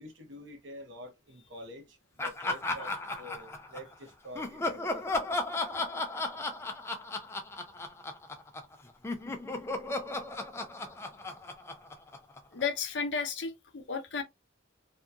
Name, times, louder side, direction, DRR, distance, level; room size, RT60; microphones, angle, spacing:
voice 1, 0.0-5.1, left 1 dB, 70° right, 0.9 m, -47 dB
Laughter, 2.2-3.9 4.3-8.7 9.0-12.6, left 2 dB, 15° left, 0.3 m, -35 dB
voice 2, 12.5-14.2, left 5 dB, 60° left, 0.6 m, -33 dB
2.8 x 2.3 x 2.3 m
head